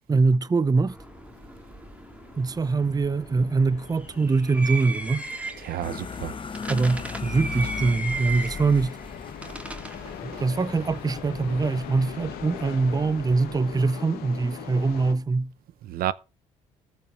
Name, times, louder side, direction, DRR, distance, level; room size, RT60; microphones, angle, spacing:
voice 1, 0.1-1.0 2.4-5.2 6.7-9.0 10.2-15.5, right 4 dB, 25° right, 0.8 m, -23 dB
sound 1, 0.9-13.9, right 2 dB, 10° right, 2.1 m, -39 dB
sound 2, 1.0-15.1, left 10 dB, 75° left, 1.8 m, -43 dB
voice 2, 5.6-6.4 7.6-7.8 8.2-8.3 9.4-9.6 10.3-10.4 15.8-16.1, right 12 dB, 65° right, 0.8 m, -32 dB
sound 3, 5.8-12.0, left 5 dB, 30° left, 0.9 m, -38 dB
14.0 x 5.5 x 7.3 m
supercardioid pair, 65°, 16 cm